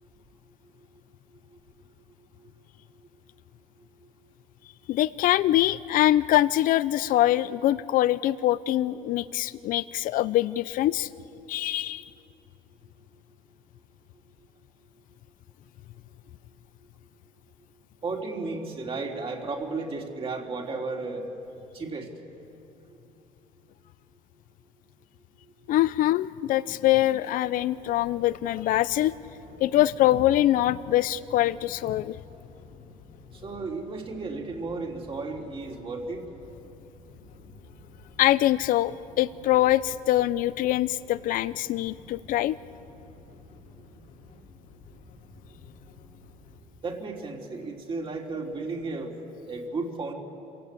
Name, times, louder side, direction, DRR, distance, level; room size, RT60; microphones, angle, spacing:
voice 1, 4.9-11.1 11.5-12.0 25.7-29.1 29.6-32.2 38.2-42.6, left 14 dB, 70° left, 16 dB, 0.5 m, -24 dB
voice 2, 18.0-21.3 21.7-22.1 33.4-36.2 46.8-49.1 49.4-50.1, right 3 dB, 40° right, 0 dB, 3.5 m, -33 dB
sound 1, 27.7-46.6, left 2 dB, 90° left, 3.2 m, -52 dB
27.0 x 17.0 x 8.5 m, 2.9 s
cardioid pair, 100°, 15 cm